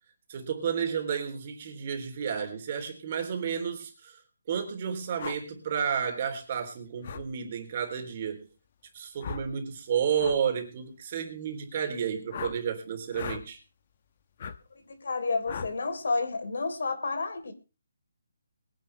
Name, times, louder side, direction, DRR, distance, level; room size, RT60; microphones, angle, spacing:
voice 1, 0.3-4.2 4.5-8.5 8.9-13.6, right 7 dB, 35° right, 3.4 m, -31 dB
sound 1, 5.2-5.4 7.0-7.3 9.2-9.5 10.2-10.4 12.3-12.6 13.1-13.4 14.4-14.6 15.5-15.7, left 7 dB, 35° left, 1.1 m, -37 dB
voice 2, 14.8-17.5, left 3 dB, 70° left, 3.9 m, -30 dB
22.0 x 10.5 x 3.4 m
hypercardioid pair, 170°, 0 cm